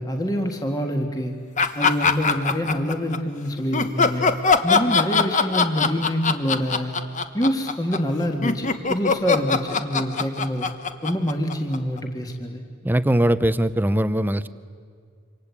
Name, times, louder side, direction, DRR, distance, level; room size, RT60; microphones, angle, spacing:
voice 1, 0.0-1.4 1.7-4.3 4.6-7.0 7.3-10.7 11.0-12.6, equal, 20° left, 3 dB, 1.7 m, -26 dB
sound 1, 1.6-3.2 3.7-12.0, left 5 dB, 35° left, 1.2 m, -21 dB
voice 2, 12.8-14.5, right 1 dB, 10° right, 14 dB, 0.7 m, -20 dB
27.5 x 25.5 x 8.4 m, 2.2 s
head